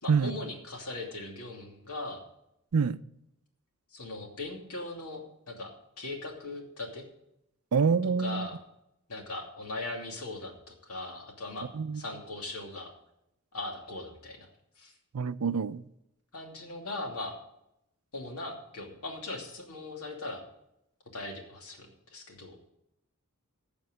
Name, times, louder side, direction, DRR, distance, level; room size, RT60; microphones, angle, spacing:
voice 1, 0.0-2.2 3.9-5.2 5.5-7.0 8.2-8.6 9.1-11.7 11.9-12.9 13.5-14.5 14.8-14.9 16.3-17.3 18.1-20.4 21.1-22.6, left 2 dB, 85° left, 2.7 m, -39 dB
voice 2, 7.7-8.5 11.7-12.0 15.1-15.8, right 5 dB, 80° right, 0.5 m, -26 dB
15.0 x 5.3 x 7.8 m
head